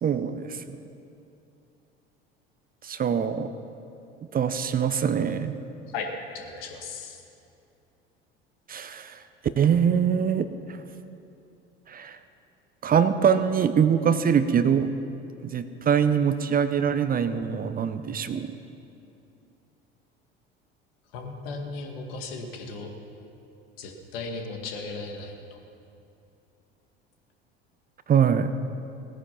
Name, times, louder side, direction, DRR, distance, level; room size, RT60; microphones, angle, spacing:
voice 1, 0.0-0.8 2.8-3.5 4.3-5.6 8.7-9.2 9.6-10.5 11.9-12.2 12.8-14.9 15.4-18.6 28.1-28.5, right 7 dB, 30° right, 11 dB, 0.7 m, -23 dB
voice 2, 6.3-7.2 21.1-22.9 23.8-25.3, left 4 dB, 65° left, 3 dB, 1.9 m, -36 dB
17.5 x 9.9 x 5.8 m, 2.6 s
figure-of-eight pair, 65°, 30 cm